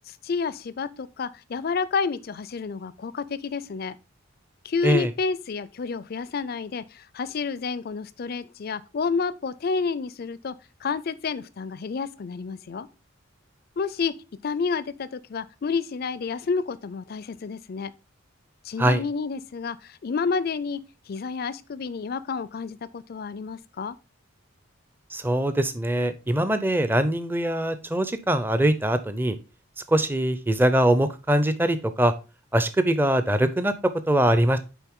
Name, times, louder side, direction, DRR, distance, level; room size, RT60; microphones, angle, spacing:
voice 1, 0.1-4.0 4.6-10.5 10.8-12.9 13.8-14.1 14.4-17.9 18.6-20.8 21.1-24.0, left 5 dB, 45° left, 0.4 m, -30 dB
voice 2, 25.1-29.4 29.9-32.1 32.5-33.7 34.1-34.6, right 1 dB, 10° right, 0.5 m, -22 dB
9.2 x 3.7 x 3.6 m
head